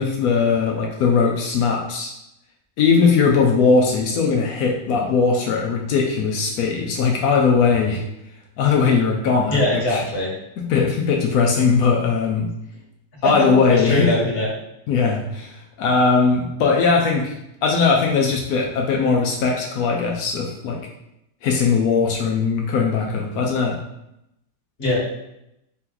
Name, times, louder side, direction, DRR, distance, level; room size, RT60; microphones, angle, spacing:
voice 1, 0.0-2.1 2.8-8.0 8.6-10.0 10.6-12.5 13.2-14.1 14.9-17.3 17.6-20.8 21.4-23.8, left 5 dB, 90° left, 0 dB, 1.1 m, -19 dB
voice 2, 9.5-10.3 13.2-14.5 24.8-25.0, left 2 dB, 45° left, -5 dB, 1.6 m, -21 dB
4.2 x 2.9 x 3.8 m, 0.84 s
omnidirectional pair, 1.5 m